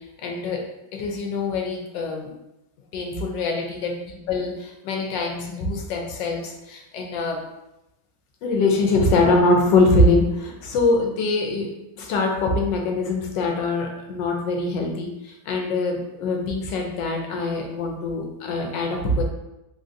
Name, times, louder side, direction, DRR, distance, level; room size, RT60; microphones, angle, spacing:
voice 1, 0.2-0.6 0.9-2.3 2.9-7.4 8.4-11.7 12.0-19.2, left 2 dB, 85° left, 1 dB, 1.3 m, -23 dB
3.6 x 2.6 x 2.5 m, 0.91 s
omnidirectional pair, 1.9 m